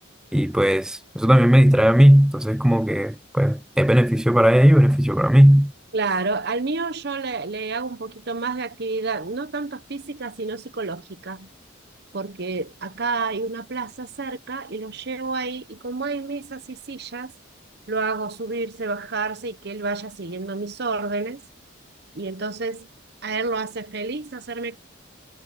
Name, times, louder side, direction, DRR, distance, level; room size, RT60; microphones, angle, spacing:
voice 1, 0.3-5.7, equal, 5° right, 0.3 m, -16 dB
voice 2, 5.9-11.5 12.1-17.3 17.9-21.4 22.1-22.9 23.2-24.8, right 3 dB, 55° right, 0.9 m, -29 dB
head